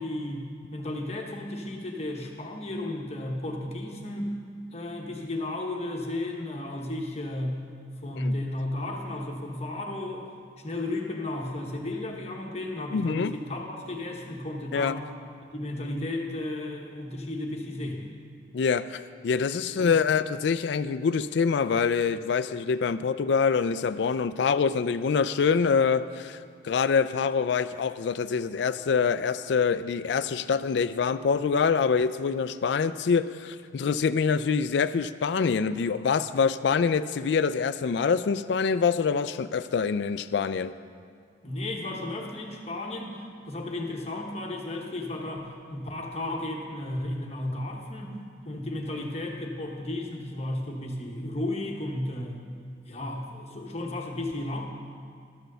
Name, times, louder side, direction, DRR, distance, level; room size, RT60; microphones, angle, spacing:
voice 1, 0.0-4.4 4.7-7.7 8.0-10.3 10.6-15.0 15.5-18.1 19.8-20.0 41.4-52.4 52.9-54.6, left 1 dB, 35° left, 1 dB, 1.0 m, -34 dB
voice 2, 12.9-13.4 14.7-15.0 18.5-40.7, left 5 dB, 65° left, 13 dB, 0.3 m, -25 dB
12.5 x 6.2 x 6.7 m, 2.2 s
head